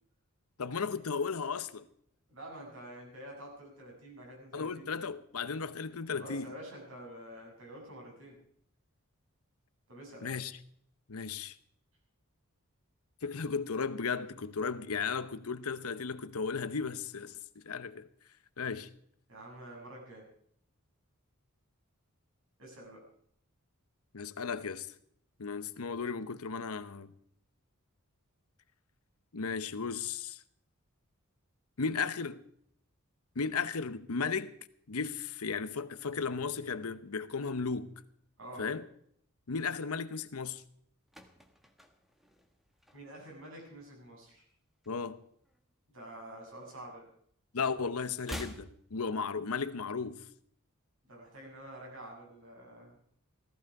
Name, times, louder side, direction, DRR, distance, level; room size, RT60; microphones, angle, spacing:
voice 1, 0.6-1.9 4.5-6.5 10.2-10.6 11.1-11.6 13.2-17.4 17.6-18.1 18.6-18.9 24.1-24.9 25.4-27.1 29.3-30.4 31.8-32.4 33.3-34.5 34.9-37.9 38.6-38.8 39.5-40.6 44.9-45.2 47.5-50.3, left 5 dB, 80° left, 0.9 m, -35 dB
voice 2, 2.3-4.9 6.1-8.4 9.9-10.3 19.3-20.3 22.6-23.0 38.4-38.7 42.9-44.5 45.9-47.1 51.0-53.0, right 1 dB, 65° right, 7.0 m, -48 dB
sound 1, 40.7-43.4 43.7-44.0 44.3-45.7 46.0-47.4 47.6-49.7 50.0-50.1, equal, ahead, 1.4 m, -48 dB
16.5 x 15.0 x 4.8 m
head